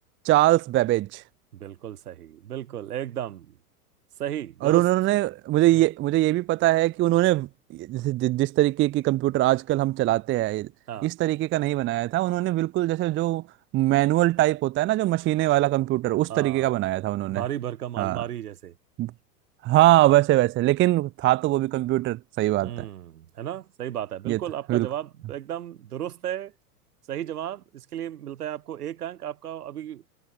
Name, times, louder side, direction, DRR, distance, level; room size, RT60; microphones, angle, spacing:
voice 1, 0.2-1.2 4.6-7.5 7.7-10.7 11.0-13.4 13.7-17.4 18.0-18.2 19.0-19.1 19.6-22.9 24.3-24.4 24.7-24.9, right 16 dB, 25° right, 0.6 m, -22 dB
voice 2, 1.5-3.6 4.2-4.9 5.7-5.9 10.9-11.1 16.3-16.7 17.2-18.7 22.6-26.5 27.1-30.0, right 11 dB, 75° right, 5.8 m, -34 dB
hypercardioid pair, 100°, 46 cm